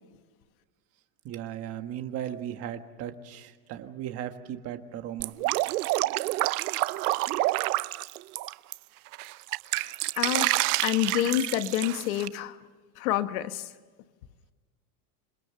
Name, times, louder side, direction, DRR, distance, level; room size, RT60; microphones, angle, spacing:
voice 1, 1.2-5.4, right 10 dB, 35° right, 8 dB, 1.5 m, -37 dB
Drip, 5.2-8.7 9.1-12.3, right 19 dB, 90° right, 0.8 m, -28 dB
voice 2, 9.8-12.6 13.0-13.7, left 13 dB, 70° left, 10 dB, 1.5 m, -28 dB
28.0 x 21.5 x 6.9 m, 1.4 s
supercardioid pair, 175°, 44 cm